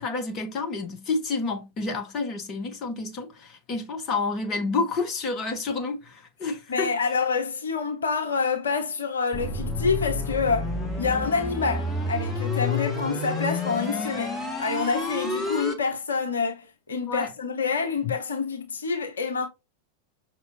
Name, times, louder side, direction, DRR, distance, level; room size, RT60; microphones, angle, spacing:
voice 1, 0.0-7.2 14.1-14.2 17.1-17.3, left 3 dB, 30° left, 1.0 m, -29 dB
voice 2, 6.7-19.5, left 5 dB, 70° left, 0.8 m, -27 dB
sound 1, 9.3-15.7, left 2 dB, 10° left, 1.3 m, -29 dB
5.8 x 2.9 x 2.7 m
figure-of-eight pair, 90°, 0 cm